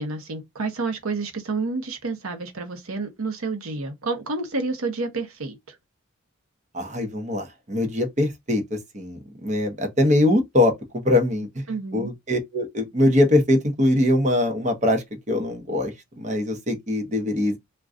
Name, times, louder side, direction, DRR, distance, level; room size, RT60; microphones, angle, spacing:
voice 1, 0.0-5.8 11.7-12.1, right 3 dB, 90° right, 0.8 m, -29 dB
voice 2, 6.7-11.6 11.9-17.6, left 1 dB, 35° right, 0.7 m, -22 dB
2.5 x 2.2 x 3.5 m
head